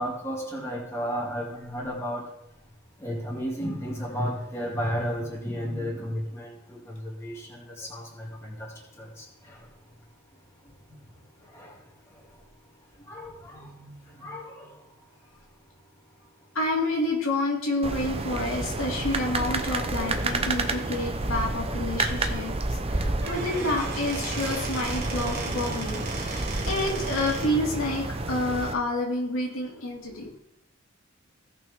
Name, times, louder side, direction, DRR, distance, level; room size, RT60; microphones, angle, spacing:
voice 1, 0.0-2.2 3.0-8.7 9.0-9.1 11.6-11.7 13.1-13.7 14.2-14.7, equal, 15° left, -4 dB, 2.4 m, -33 dB
voice 2, 16.5-30.3, left 1 dB, 85° left, -2 dB, 2.5 m, -29 dB
sound 1, 17.8-28.7, right 2 dB, 30° right, 0.7 m, -30 dB
Squeak / Wood, 23.0-27.6, right 3 dB, 50° right, 1.9 m, -37 dB
16.5 x 5.9 x 3.6 m, 0.81 s
head